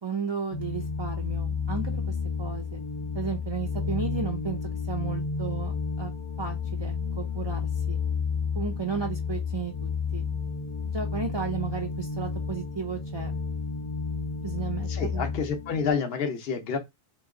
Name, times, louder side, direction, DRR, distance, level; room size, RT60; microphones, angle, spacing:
voice 1, 0.0-2.8 3.1-4.6 4.9-6.1 6.4-8.0 8.5-10.2 10.8-13.4 14.4-15.3, right 6 dB, 35° right, 0.4 m, -34 dB
sound 1, 0.5-15.9, left 5 dB, 45° left, 0.4 m, -31 dB
voice 2, 14.9-16.8, left 6 dB, 60° left, 1.0 m, -29 dB
3.0 x 2.9 x 3.6 m
omnidirectional pair, 1.2 m